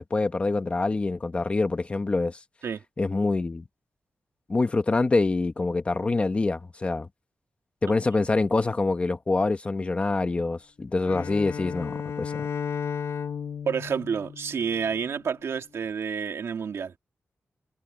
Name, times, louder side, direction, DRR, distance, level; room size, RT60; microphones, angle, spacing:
voice 1, 0.0-2.4 3.0-3.6 4.5-7.1 7.8-12.5, left 3 dB, 25° left, 1.3 m, -25 dB
Bowed string instrument, 11.0-15.2, left 7 dB, 85° left, 1.6 m, -34 dB
voice 2, 13.7-16.9, right 6 dB, 75° right, 2.1 m, -29 dB
wide cardioid pair, 175°, 5 cm